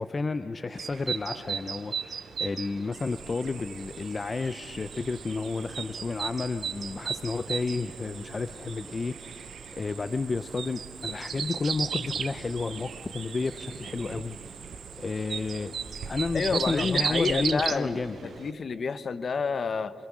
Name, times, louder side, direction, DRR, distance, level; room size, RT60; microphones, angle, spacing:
voice 1, 0.0-15.7 16.1-18.4, left 3 dB, 30° left, 11 dB, 0.6 m, -32 dB
sound 1, 0.8-18.5, right 7 dB, 60° right, 0.7 m, -36 dB
Cricket, 2.9-17.5, right 6 dB, 85° right, 2.2 m, -46 dB
voice 2, 16.3-19.9, left 5 dB, 50° left, 13 dB, 0.9 m, -29 dB
27.0 x 25.0 x 6.2 m, 3.0 s
cardioid pair, 105°, 0 cm